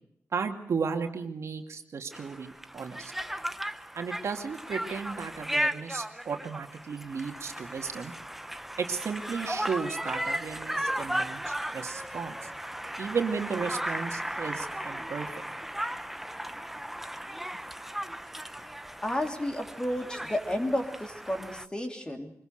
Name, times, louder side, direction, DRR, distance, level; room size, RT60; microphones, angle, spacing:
voice 1, 0.3-3.1 3.9-8.1 8.8-12.4 13.0-15.4, right 5 dB, 60° right, 5 dB, 2.4 m, -34 dB
Conversation, 2.1-21.7, right 1 dB, 5° right, 0.9 m, -36 dB
voice 2, 19.0-22.3, left 1 dB, 15° left, 4 dB, 3.1 m, -32 dB
24.5 x 21.5 x 6.6 m, 0.72 s
wide cardioid pair, 145°, 5 cm